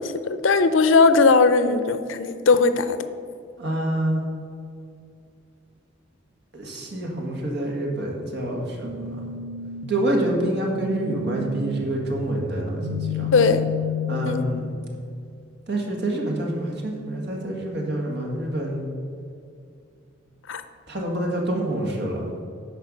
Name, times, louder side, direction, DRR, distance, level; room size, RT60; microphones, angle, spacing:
voice 1, 0.0-3.0 13.3-13.6 14.3-14.4 20.5-20.6, left 4 dB, 80° left, 11 dB, 0.6 m, -18 dB
voice 2, 3.6-4.2 6.5-9.2 9.9-13.3 14.1-14.7 15.7-18.8 20.9-22.3, right 1 dB, 60° right, 0 dB, 1.7 m, -27 dB
sound 1, 8.8-14.8, left 4 dB, 85° right, 0.8 m, -31 dB
10.5 x 4.5 x 6.2 m, 2.3 s
head